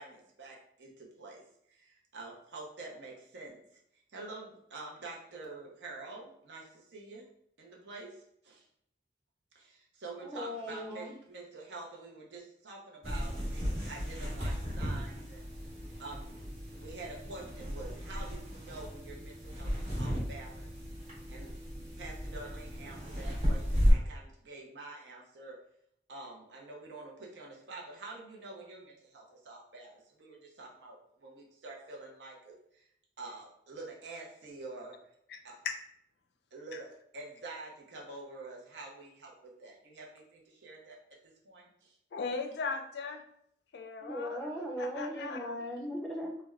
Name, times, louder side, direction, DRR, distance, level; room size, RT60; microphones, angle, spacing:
voice 1, 0.0-1.4 1.7-3.6 4.1-7.3 7.6-8.6 9.5-15.5 16.0-16.5 16.8-20.7 21.3-21.5 22.0-25.6 26.1-32.9 33.2-35.0 35.4-35.5 36.5-41.0 41.4-42.0, right 3 dB, 85° right, -1 dB, 0.7 m, -47 dB
voice 2, 10.2-11.1 44.0-46.4, equal, ahead, -1 dB, 0.5 m, -38 dB
sound 1, 13.0-23.9, equal, 35° right, 1.0 m, -35 dB
voice 3, 35.3-35.7 42.1-43.2 43.7-44.5 44.8-45.6, left 4 dB, 70° left, 5 dB, 0.4 m, -38 dB
3.3 x 2.2 x 2.3 m, 0.72 s
head